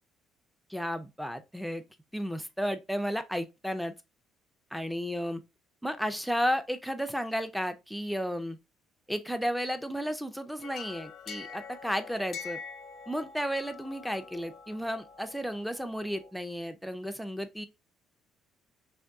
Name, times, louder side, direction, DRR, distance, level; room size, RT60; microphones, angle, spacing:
voice 1, 0.7-1.8 2.1-3.9 4.7-5.4 5.8-8.6 9.1-12.6 13.1-17.7, equal, ahead, 0.4 m, -33 dB
sound 1, 10.6-16.3, left 6 dB, 60° left, 0.5 m, -45 dB
3.4 x 2.9 x 2.6 m
cardioid pair, 125°, 0 cm